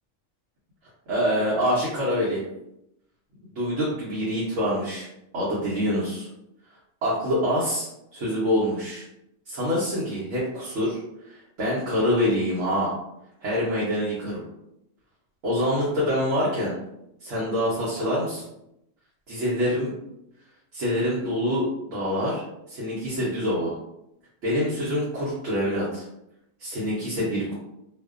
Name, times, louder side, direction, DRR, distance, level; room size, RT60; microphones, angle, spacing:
voice 1, 1.1-2.4 3.5-5.1 5.3-6.3 7.0-9.0 9.5-11.0 11.2-12.9 13.4-14.4 15.4-16.7 17.2-18.4 19.3-19.9 20.7-23.7 24.4-26.0 26.6-27.5, equal, 85° right, -7 dB, 1.1 m, -26 dB
2.5 x 2.1 x 2.3 m, 0.83 s
omnidirectional pair, 1.3 m